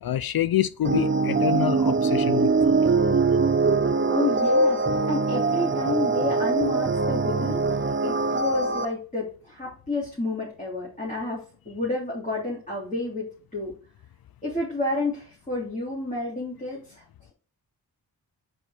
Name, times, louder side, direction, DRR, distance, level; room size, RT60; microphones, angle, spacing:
voice 1, 0.0-2.8, left 11 dB, 60° left, 0.5 m, -27 dB
sound 1, 0.8-8.9, right 3 dB, 30° right, 0.8 m, -22 dB
voice 2, 4.1-7.6 8.0-13.7 14.4-17.0, left 2 dB, 20° left, 3.3 m, -30 dB
5.1 x 5.0 x 4.3 m
cardioid pair, 50°, 41 cm